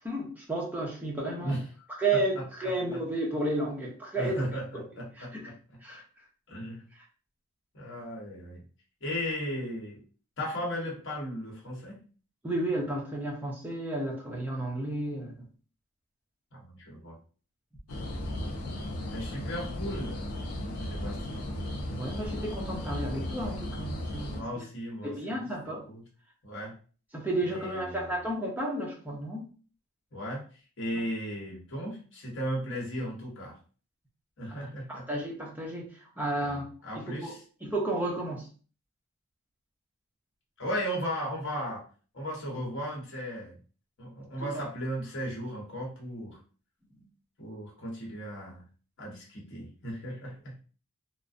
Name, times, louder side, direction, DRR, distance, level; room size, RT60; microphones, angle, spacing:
voice 1, 0.0-1.6 2.0-4.5 5.2-5.5 5.8-6.0 6.9-7.0 12.4-15.5 19.1-19.2 21.9-24.6 25.0-25.8 27.1-29.5 30.9-31.0 34.5-36.7 36.9-37.3 37.6-38.5 44.4-44.6 47.0-47.1, right 2 dB, 10° right, -2 dB, 0.5 m, -32 dB
voice 2, 2.1-2.4 4.2-5.5 6.5-6.8 7.7-8.6 9.0-10.0 10.4-12.0 16.5-17.2 19.1-20.3 20.9-21.4 24.3-25.4 25.9-26.0 26.4-26.7 27.4-28.1 30.1-30.4 30.8-33.6 34.4-35.0 36.4-37.4 40.6-41.8 42.1-43.5 44.0-46.4 47.4-48.6 49.0-50.5, equal, 55° left, -2 dB, 0.9 m, -36 dB
sound 1, 17.9-24.4, left 1 dB, 80° left, 0.6 m, -35 dB
2.5 x 2.0 x 2.4 m, 0.39 s
head